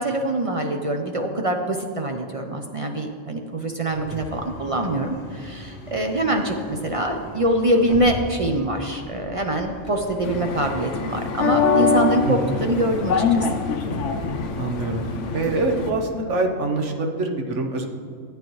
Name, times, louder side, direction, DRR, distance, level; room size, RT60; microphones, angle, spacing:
voice 1, 0.0-13.5, right 1 dB, 45° right, 3 dB, 0.4 m, -24 dB
Bus, 3.8-16.3, equal, 40° left, 1.4 m, -39 dB
sound 1, 10.2-15.9, left 5 dB, 70° left, 0.9 m, -24 dB
voice 2, 12.3-12.6 14.6-15.0 15.3-17.9, right 2 dB, 65° right, 3 dB, 1.2 m, -25 dB
13.0 x 8.8 x 3.1 m, 2.2 s
omnidirectional pair, 1.4 m